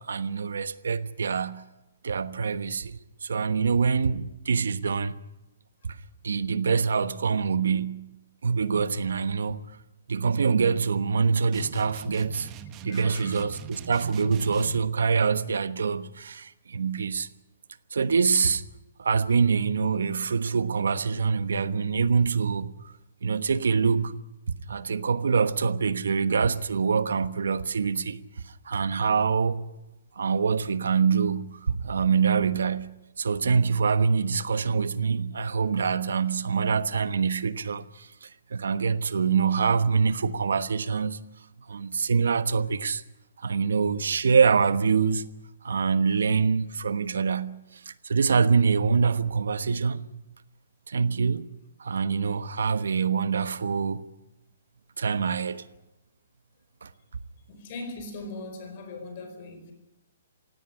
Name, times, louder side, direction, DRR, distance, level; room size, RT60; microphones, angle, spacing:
voice 1, 0.0-1.6 2.0-5.2 5.8-6.0 6.2-8.1 8.4-9.6 10.1-12.5 12.8-17.3 17.9-18.6 19.0-22.9 23.2-24.2 24.5-29.7 30.2-32.9 33.2-41.2 41.7-43.0 43.4-45.2 45.6-50.2 50.9-51.5 51.8-54.0 55.0-55.6 56.8-56.9, right 5 dB, 90° right, 1.2 m, -25 dB
sound 1, 11.5-14.9, right 9 dB, 20° right, 1.1 m, -42 dB
voice 2, 12.9-13.5 57.5-59.7, left 2 dB, 35° left, 4.8 m, -40 dB
17.5 x 16.5 x 9.9 m
hypercardioid pair, 170°, 0 cm